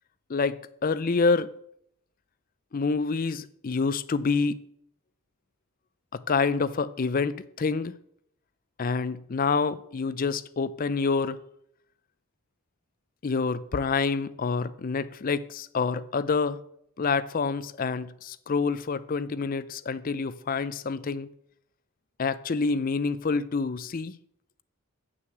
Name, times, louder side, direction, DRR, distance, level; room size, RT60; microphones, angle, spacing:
voice 1, 0.3-1.5 2.7-4.7 6.1-7.9 8.8-11.4 13.2-16.6 17.0-21.3 22.2-24.1, left 4 dB, 40° left, 0.4 m, -27 dB
7.8 x 6.2 x 7.8 m
head